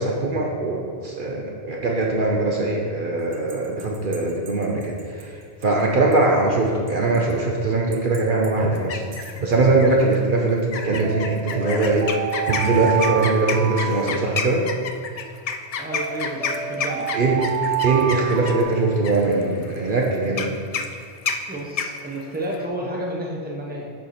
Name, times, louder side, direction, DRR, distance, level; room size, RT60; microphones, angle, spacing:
voice 1, 0.0-5.3 5.6-12.1 12.5-14.6 17.1-17.4 17.8-20.5, right 3 dB, 55° right, -1 dB, 0.9 m, -21 dB
sound 1, 3.3-5.2 5.6-5.7 6.1-6.2 6.9-7.3 7.9-8.5 8.9-9.3 11.0-14.8 15.9-18.6, right 9 dB, 90° right, 1.2 m, -29 dB
sound 2, 8.7-9.4 9.8-10.1 10.7-22.7, left 5 dB, 55° left, 0.4 m, -30 dB
voice 2, 15.8-17.1 21.5-23.9, right 1 dB, 10° right, -2 dB, 0.9 m, -31 dB
10.5 x 4.5 x 4.3 m, 2.1 s
omnidirectional pair, 1.1 m